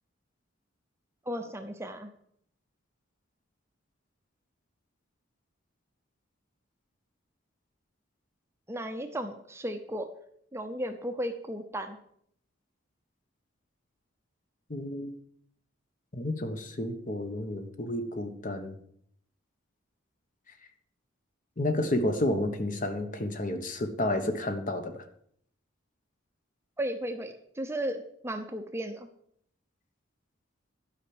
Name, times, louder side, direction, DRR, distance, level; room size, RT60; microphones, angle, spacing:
voice 1, 1.3-2.1 8.7-10.1 10.5-12.0 26.8-29.1, right 1 dB, 15° right, 7 dB, 0.7 m, -35 dB
voice 2, 14.7-15.2 16.1-18.8 21.6-25.0, left 1 dB, 40° left, 7 dB, 1.2 m, -31 dB
12.0 x 5.8 x 7.9 m, 0.67 s
head